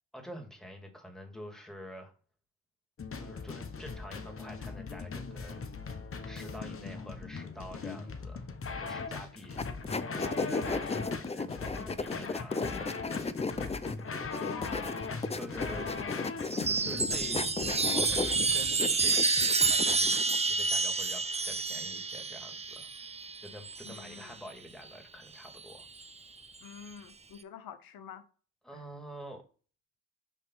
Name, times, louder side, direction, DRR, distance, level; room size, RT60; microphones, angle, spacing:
voice 1, 0.1-2.1 3.2-5.7 6.2-8.5 8.8-9.6 10.2-12.8 15.4-15.9 16.8-17.5 18.0-22.9 23.4-25.9 28.6-29.4, equal, ahead, 2.3 m, -47 dB
sound 1, 3.0-20.2, left 4 dB, 35° left, 1.0 m, -40 dB
sound 2, 9.6-20.4, left 4 dB, 15° left, 0.6 m, -35 dB
voice 2, 14.3-15.4 15.7-16.5 23.8-24.4 26.6-28.2 28.7-28.8, left 7 dB, 70° left, 0.9 m, -47 dB
Chime, 16.4-24.2 25.5-26.1, right 4 dB, 15° right, 0.7 m, -29 dB
5.6 x 3.2 x 5.5 m
supercardioid pair, 55°, 37 cm